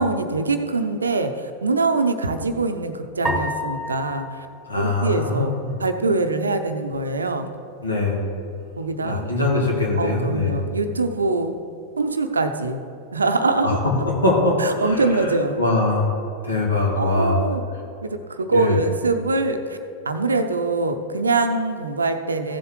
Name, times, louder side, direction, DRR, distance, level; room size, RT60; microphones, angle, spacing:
voice 1, 0.0-4.5 4.7-5.5 5.8-7.5 8.8-9.3 10.0-11.6 12.0-12.8 13.1-13.8 14.6-15.6 17.0-17.6 18.0-19.8 20.0-22.6, right 3 dB, 75° right, 8 dB, 0.7 m, -23 dB
sound 1, 3.2-5.7, equal, 10° right, 1.4 m, -30 dB
voice 2, 4.7-5.7 7.8-8.2 9.0-10.6 13.6-13.7 14.0-15.3 15.6-16.1 16.4-17.3 18.5-18.8, left 2 dB, 75° left, -3 dB, 2.5 m, -22 dB
15.5 x 7.6 x 3.3 m, 2.6 s
figure-of-eight pair, 90°, 0 cm